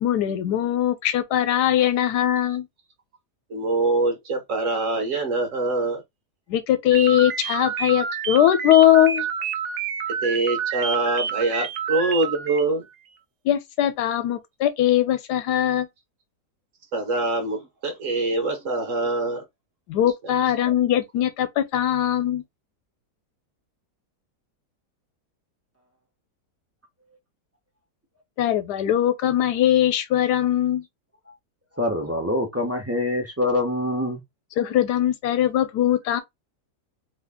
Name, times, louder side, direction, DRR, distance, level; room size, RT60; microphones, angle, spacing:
voice 1, 0.0-2.7 6.5-9.3 13.4-15.9 19.9-22.4 28.4-30.8 34.6-36.2, left 11 dB, 80° left, 1.2 m, -21 dB
voice 2, 3.5-6.0 10.1-12.8 16.9-19.4 20.2-20.3, right 2 dB, 55° right, 1.1 m, -24 dB
sound 1, 6.9-12.7, right 7 dB, 70° right, 0.7 m, -28 dB
voice 3, 31.8-34.2, left 1 dB, 20° right, 0.4 m, -25 dB
3.1 x 2.4 x 3.5 m
omnidirectional pair, 1.8 m